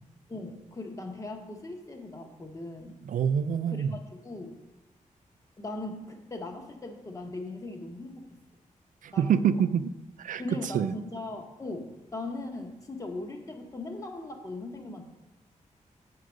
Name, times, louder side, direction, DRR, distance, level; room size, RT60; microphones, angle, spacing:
voice 1, 0.3-3.0 3.7-4.6 5.6-8.2 9.1-9.4 10.4-15.1, left 2 dB, 25° left, 4 dB, 1.1 m, -39 dB
voice 2, 3.1-4.0 9.0-9.9 10.2-10.4 10.7-11.0, right 8 dB, 80° right, 12 dB, 0.4 m, -26 dB
8.0 x 4.7 x 6.3 m, 1.0 s
wide cardioid pair, 140°, 13 cm